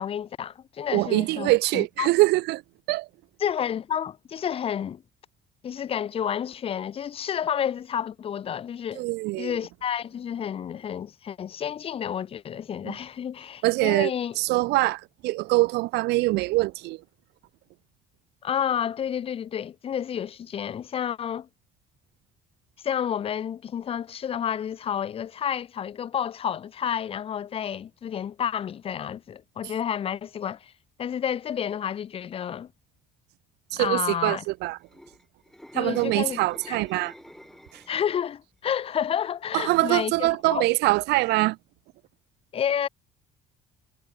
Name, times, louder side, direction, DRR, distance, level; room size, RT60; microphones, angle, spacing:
voice 1, 0.0-2.1 3.4-5.0 5.6-9.0 9.4-14.4 18.4-21.5 22.8-30.7 31.0-32.7 33.8-34.4 35.7-36.4 36.7-36.8 37.9-40.6 42.5-42.9, left 9 dB, 35° left, 0.5 m, -30 dB
voice 2, 0.9-2.6 2.9-3.1 9.0-9.6 12.8-13.0 13.6-17.0 33.7-34.8 35.7-37.1 37.7-37.8 39.5-41.6, right 20 dB, 80° right, 0.4 m, -24 dB
sound 1, 34.7-38.2 38.5-38.8, equal, ahead, 1.5 m, -48 dB
cardioid pair, 110°, 17 cm